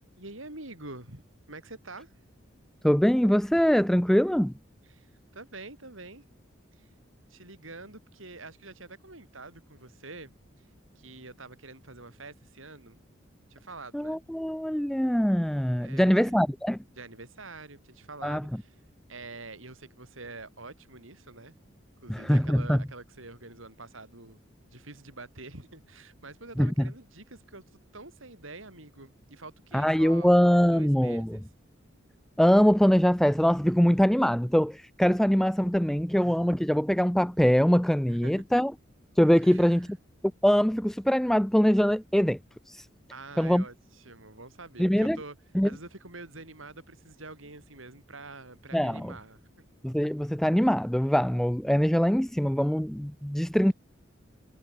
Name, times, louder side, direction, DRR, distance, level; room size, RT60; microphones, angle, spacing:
voice 1, 0.2-1.2 1.5-2.1 4.8-6.2 6.7-6.9 7.3-10.7 10.9-13.0 13.5-14.2 15.8-16.4 17.0-18.8 19.1-21.5 22.0-24.4 24.7-30.4 30.7-31.4 38.1-38.3 39.4-39.9 43.1-45.3 45.6-49.4, right 3 dB, 85° right, 6.6 m, -46 dB
voice 2, 2.8-4.5 13.9-16.8 18.2-18.4 22.1-22.8 26.6-26.7 29.7-31.4 32.4-38.7 39.2-39.9 40.4-42.4 42.7-42.9 43.4-43.6 44.8-45.2 45.5-45.7 48.7-49.1 49.8-53.7, equal, ahead, 0.4 m, -23 dB
head